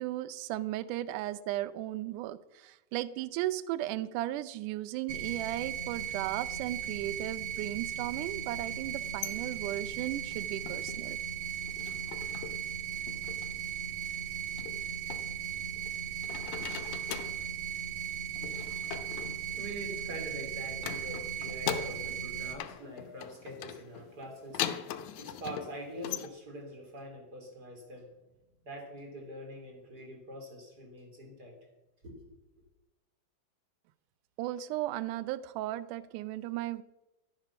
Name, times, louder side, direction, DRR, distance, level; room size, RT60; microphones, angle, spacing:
voice 1, 0.0-11.2 34.4-36.8, right 14 dB, 80° right, 15 dB, 1.9 m, -36 dB
sound 1, 5.1-22.5, right 9 dB, 55° right, 1.9 m, -37 dB
sound 2, 8.9-11.1 11.4-12.7 12.9-13.5 14.6-15.9 16.2-17.5 18.4-20.3 20.8-22.3 22.6-26.3, left 10 dB, 75° left, 1.8 m, -41 dB
voice 2, 19.4-28.1 28.6-31.6 32.0-32.2, right 1 dB, 25° right, 1 dB, 3.4 m, -44 dB
13.0 x 10.5 x 5.9 m, 1.0 s
omnidirectional pair, 4.2 m